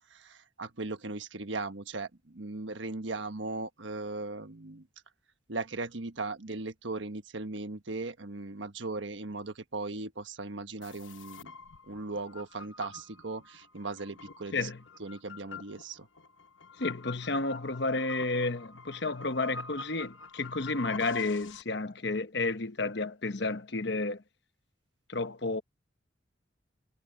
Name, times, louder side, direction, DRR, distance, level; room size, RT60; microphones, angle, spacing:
voice 1, 0.1-4.9 5.5-11.6 11.9-14.7 15.0-16.1, right 3 dB, 75° right, 1.3 m, -38 dB
sound 1, 10.8-21.6, left 4 dB, 85° left, 1.0 m, -47 dB
voice 2, 16.8-24.2 25.1-25.6, left 3 dB, 60° left, 1.0 m, -31 dB
head